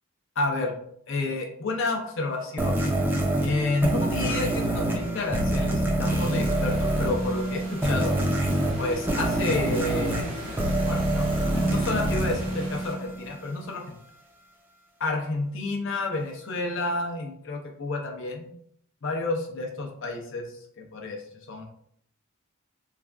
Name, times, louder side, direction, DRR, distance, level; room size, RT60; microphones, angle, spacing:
voice 1, 0.4-0.7 1.1-2.8 3.4-8.2 8.8-10.3 10.8-13.9 15.0-18.5 19.0-20.4 20.8-21.6, left 2 dB, 60° left, 2 dB, 0.5 m, -30 dB
sound 1, 2.6-13.4, right 1 dB, 10° right, 0.4 m, -26 dB
sound 2, 6.0-12.9, right 1 dB, 85° right, 1.1 m, -41 dB
3.2 x 2.3 x 2.4 m, 0.67 s
head